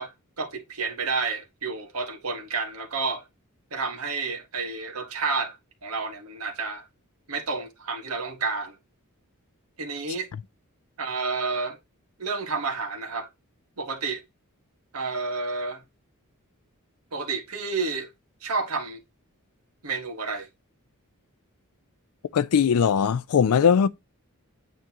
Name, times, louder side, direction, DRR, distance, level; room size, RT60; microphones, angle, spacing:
voice 1, 0.0-3.2 3.7-5.6 5.8-6.8 7.3-8.8 9.8-10.3 11.0-11.8 12.2-13.3 13.8-14.2 14.9-15.8 17.1-18.1 18.4-19.0 19.8-20.5, right 4 dB, 80° right, 1.9 m, -30 dB
voice 2, 22.3-23.9, left 7 dB, 80° left, 0.4 m, -20 dB
9.1 x 3.6 x 3.0 m
head